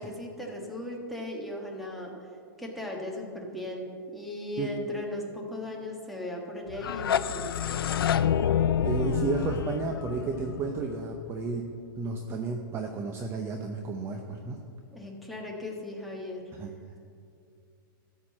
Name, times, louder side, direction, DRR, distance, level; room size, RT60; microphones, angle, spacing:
voice 1, 0.0-2.1 2.6-8.1 14.9-16.4, left 1 dB, ahead, -2 dB, 1.5 m, -37 dB
sound 1, 6.7-11.6, left 9 dB, 90° left, 0.4 m, -28 dB
voice 2, 8.8-11.6 12.0-14.6 16.6-16.7, right 4 dB, 20° right, 3 dB, 0.7 m, -32 dB
13.0 x 4.7 x 7.2 m, 2.3 s
hypercardioid pair, 140°, 12 cm